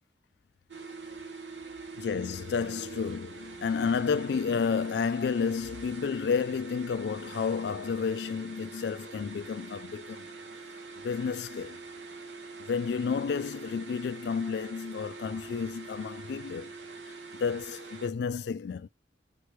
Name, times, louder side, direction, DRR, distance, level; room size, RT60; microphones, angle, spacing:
sound 1, 0.7-18.1, right 4 dB, 80° right, 0.8 m, -44 dB
voice 1, 2.0-10.3 11.0-11.8 12.6-16.7 17.1-18.9, left 6 dB, 70° left, 0.3 m, -31 dB
5.4 x 3.1 x 3.1 m
head